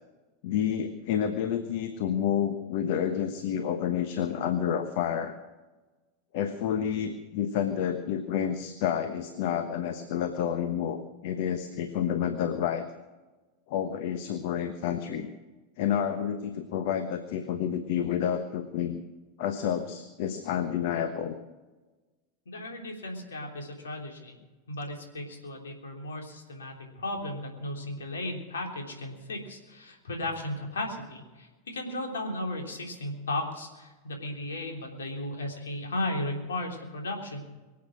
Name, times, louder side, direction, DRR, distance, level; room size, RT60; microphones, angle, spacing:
voice 1, 0.4-5.4 6.3-12.8 13.7-15.3 15.8-19.0 19.4-21.4, left 9 dB, 60° left, 9 dB, 1.1 m, -29 dB
voice 2, 22.4-24.3 24.7-37.4, left 1 dB, 80° left, 2 dB, 3.4 m, -35 dB
23.5 x 8.4 x 6.3 m, 1.2 s
hypercardioid pair, 90°, 0 cm